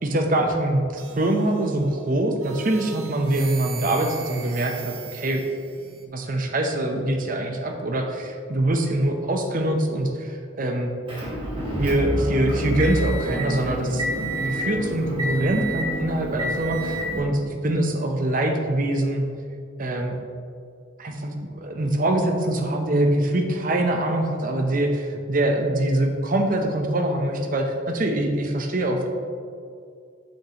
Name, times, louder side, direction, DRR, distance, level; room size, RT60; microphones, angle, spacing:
voice 1, 0.0-5.4 5.8-10.9 11.8-19.2 19.8-20.2 21.0-29.1, right 1 dB, 40° right, 3 dB, 0.7 m, -24 dB
sound 1, 1.0-1.9 2.4-6.0, right 7 dB, 85° right, 0.8 m, -40 dB
Motor vehicle (road) / Engine, 11.1-17.2, equal, 25° right, 1.4 m, -28 dB
7.2 x 6.4 x 2.9 m, 2.3 s
head